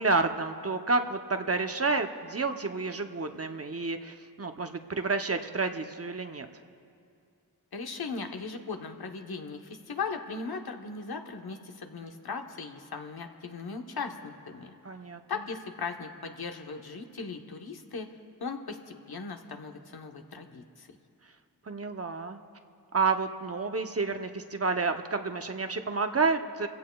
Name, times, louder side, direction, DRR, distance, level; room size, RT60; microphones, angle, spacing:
voice 1, 0.0-6.5 14.8-15.2 21.7-22.4 22.9-26.7, right 4 dB, 40° right, 6 dB, 0.7 m, -30 dB
voice 2, 7.7-14.7 15.3-18.1 18.4-20.9, left 4 dB, 70° left, 4 dB, 1.1 m, -38 dB
26.0 x 16.0 x 2.3 m, 2.4 s
wide cardioid pair, 65°, 38 cm